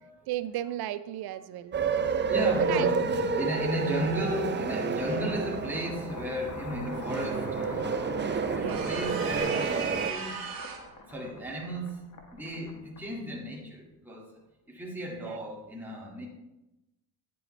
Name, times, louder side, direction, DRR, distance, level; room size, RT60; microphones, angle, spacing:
voice 1, 0.3-1.8 2.5-3.0 8.5-8.9 15.1-15.4, right 13 dB, 90° right, 14 dB, 0.5 m, -35 dB
sound 1, 1.7-10.1, right 5 dB, 30° right, 0.5 m, -30 dB
voice 2, 1.9-10.4 11.0-14.4 14.7-16.3, equal, 5° right, -3 dB, 2.0 m, -35 dB
sound 2, 5.2-13.4, left 3 dB, 50° left, 1.3 m, -44 dB
sound 3, 8.7-10.9, right 7 dB, 70° right, 1.7 m, -36 dB
9.4 x 7.7 x 3.2 m, 0.94 s
cardioid pair, 100°, 37 cm